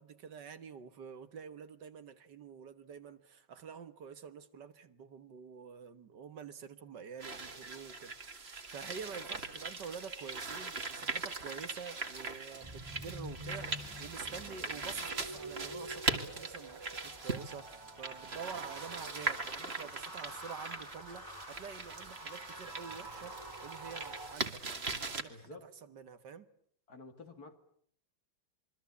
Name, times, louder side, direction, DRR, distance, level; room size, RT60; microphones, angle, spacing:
voice 1, 0.0-13.7 14.0-26.5, right 6 dB, 65° right, 1.9 m, -48 dB
sound 1, 7.2-25.2, right 3 dB, 35° right, 2.2 m, -40 dB
sound 2, 12.6-24.4, right 1 dB, 15° right, 2.8 m, -48 dB
voice 2, 25.2-25.7 26.9-27.5, left 3 dB, 55° left, 3.1 m, -51 dB
27.0 x 23.5 x 8.4 m
omnidirectional pair, 2.0 m